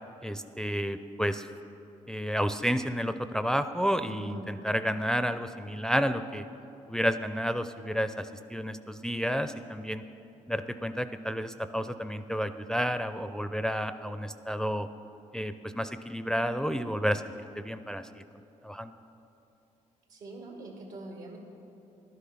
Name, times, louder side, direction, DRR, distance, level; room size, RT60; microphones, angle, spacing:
voice 1, 0.2-1.5 2.1-6.4 6.9-10.0 10.5-14.9 15.3-17.2 17.6-18.2 18.6-18.9, equal, 5° left, 10 dB, 0.4 m, -31 dB
voice 2, 4.0-4.6 20.1-21.4, right 1 dB, 80° right, 1 dB, 2.3 m, -43 dB
12.0 x 10.0 x 5.8 m, 2.8 s
cardioid pair, 70°, 14 cm